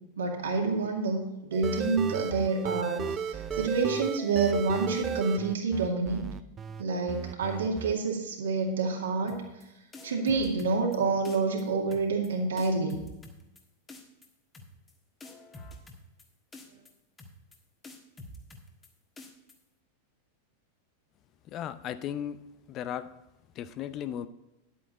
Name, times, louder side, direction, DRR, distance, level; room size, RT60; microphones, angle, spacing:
voice 1, 0.2-6.2 6.8-9.4 10.0-13.0, right 4 dB, 65° right, 1 dB, 2.2 m, -28 dB
sound 1, 1.5-6.8 7.1-7.9, right 7 dB, 25° right, 0.5 m, -34 dB
sound 2, 9.3-9.6 9.9-11.0 11.3-11.6 11.9-12.3 12.6-13.6 13.9-14.3 14.5-14.9 15.2-16.2 16.5-16.9 17.2-17.6 17.8-18.9 19.2-19.5, left 2 dB, 15° left, 1.6 m, -47 dB
voice 2, 21.5-22.4 22.7-23.1 23.6-24.3, left 10 dB, 35° left, 13 dB, 0.5 m, -35 dB
10.5 x 8.5 x 4.2 m, 0.96 s
figure-of-eight pair, 90°, 0 cm